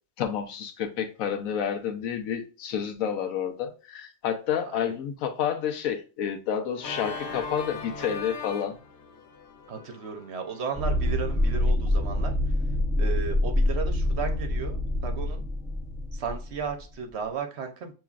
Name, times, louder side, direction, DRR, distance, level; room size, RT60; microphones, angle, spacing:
voice 1, 0.2-8.8, left 8 dB, 85° left, 1.1 m, -30 dB
voice 2, 4.6-5.0 9.7-12.5 12.9-15.5 16.1-17.9, right 6 dB, 60° right, 1.0 m, -35 dB
Organ, 6.8-11.6, left 4 dB, 60° left, 1.2 m, -40 dB
sound 1, 10.7-16.9, left 1 dB, 5° left, 0.4 m, -26 dB
7.0 x 3.0 x 2.4 m
omnidirectional pair, 1.4 m